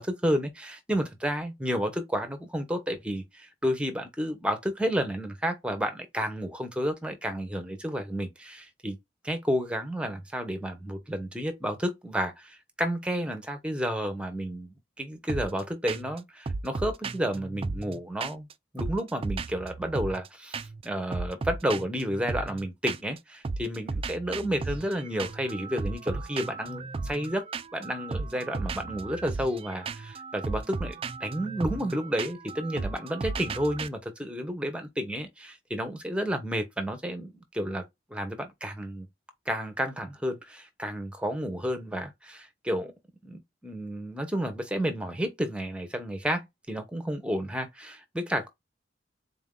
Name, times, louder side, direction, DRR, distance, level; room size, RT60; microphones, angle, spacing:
voice 1, 0.0-9.0 9.2-18.5 18.7-27.4 27.7-37.8 38.1-39.1 39.5-42.9 43.2-48.5, equal, 5° right, 0.9 m, -31 dB
sound 1, 15.3-15.6 15.9-16.2 16.5-18.5 18.8-20.3 20.5-20.9 21.1-23.2 23.4-33.9, right 3 dB, 30° right, 0.3 m, -35 dB
4.0 x 2.7 x 3.7 m
head